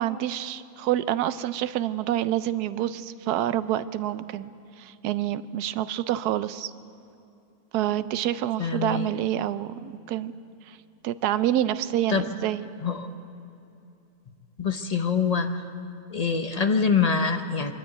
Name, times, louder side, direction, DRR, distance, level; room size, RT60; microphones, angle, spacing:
voice 1, 0.0-4.5 4.8-6.7 7.7-10.3 10.7-10.8 11.0-12.7, right 12 dB, 85° right, 14 dB, 1.2 m, -27 dB
voice 2, 8.6-9.1 12.1-12.2 12.8-13.1 14.6-15.6 16.1-17.7, left 5 dB, 40° left, 7 dB, 0.6 m, -25 dB
23.0 x 12.5 x 9.1 m, 2.7 s
omnidirectional pair, 1.6 m